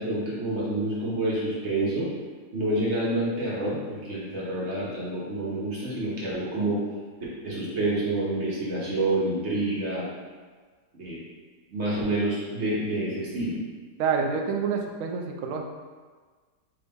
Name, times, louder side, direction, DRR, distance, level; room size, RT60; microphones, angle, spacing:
voice 1, 0.0-2.1 2.5-6.8 7.4-10.1 10.9-11.2 11.7-13.6, right 1 dB, 45° right, -7 dB, 1.1 m, -28 dB
voice 2, 14.0-15.6, right 5 dB, 90° right, 2 dB, 0.7 m, -27 dB
4.8 x 2.6 x 3.5 m, 1.5 s
omnidirectional pair, 1.9 m